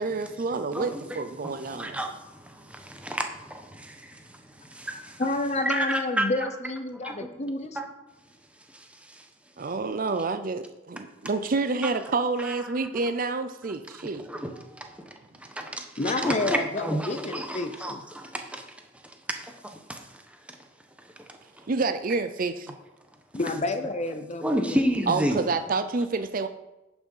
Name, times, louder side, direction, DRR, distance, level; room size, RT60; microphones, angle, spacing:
voice 1, 0.0-2.0 9.6-14.2 21.7-22.8 25.1-26.5, right 3 dB, 45° right, 0.5 m, -28 dB
voice 2, 0.7-5.3 5.6-6.5 7.0-7.3 7.7-7.8 8.7-9.3 11.8-11.9 12.4-12.8 14.0-15.1 15.4-18.7 18.9-20.6 21.0-21.7 24.4-25.4, equal, 5° right, 1.0 m, -32 dB
voice 3, 5.2-7.8 16.0-18.0 23.3-24.8, left 2 dB, 35° left, 0.7 m, -29 dB
10.5 x 6.0 x 5.5 m
head